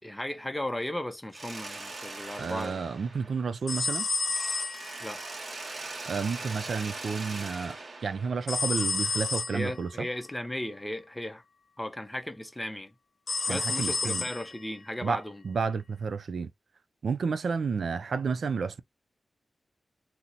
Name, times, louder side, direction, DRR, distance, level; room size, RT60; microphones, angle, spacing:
voice 1, 0.0-2.8 5.0-5.2 9.5-11.4 11.8-12.9 13.5-15.4, left 1 dB, 10° left, 0.6 m, -36 dB
Mechanisms, 1.3-3.9 4.3-9.1, right 3 dB, 50° right, 1.0 m, -41 dB
voice 2, 2.4-4.1 6.1-7.8 8.0-10.1 13.5-14.2 15.0-16.5 17.0-18.8, right 5 dB, 70° right, 0.4 m, -31 dB
sound 1, 3.7-5.3 8.5-9.7 13.3-14.6, left 4 dB, 70° left, 0.4 m, -30 dB
2.8 x 2.0 x 3.8 m
wide cardioid pair, 130°, 0 cm